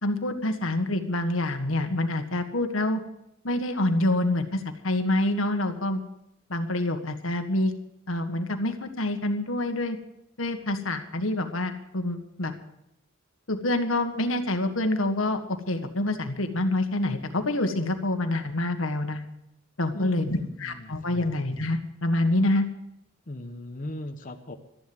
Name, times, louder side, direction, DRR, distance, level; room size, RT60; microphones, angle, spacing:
voice 1, 0.0-3.0 3.4-6.0 6.5-7.7 8.1-10.0 10.4-12.5 13.5-19.2 19.8-22.7, left 1 dB, 85° left, 6 dB, 1.7 m, -27 dB
voice 2, 19.9-21.3 23.3-24.6, left 1 dB, 40° left, 4 dB, 1.1 m, -38 dB
13.5 x 11.0 x 7.9 m, 0.85 s
head